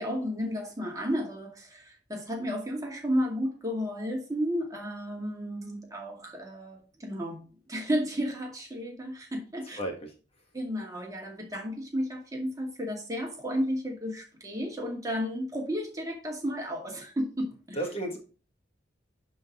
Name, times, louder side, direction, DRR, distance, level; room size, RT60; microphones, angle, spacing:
voice 1, 0.0-9.8 10.5-17.8, equal, 20° right, 2.2 m, -33 dB
voice 2, 9.8-10.1 17.7-18.2, right 1 dB, 35° left, 1.6 m, -33 dB
11.0 x 4.0 x 3.6 m
head